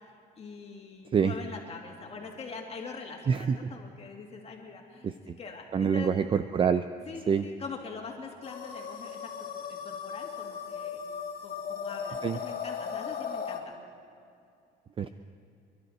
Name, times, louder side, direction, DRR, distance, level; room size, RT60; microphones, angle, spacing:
voice 1, 0.0-5.1 5.4-6.2 7.1-11.0 11.4-13.8, left 4 dB, 40° left, 1 dB, 2.3 m, -43 dB
voice 2, 3.3-3.7 5.0-5.4 5.7-6.8 7.3-7.4 12.2-12.4 15.0-15.1, right 6 dB, 30° right, 10 dB, 0.5 m, -26 dB
sound 1, 8.4-13.6, left 7 dB, 55° left, 2.3 m, -37 dB
28.0 x 12.0 x 4.3 m, 2.5 s
cardioid pair, 110°, 17 cm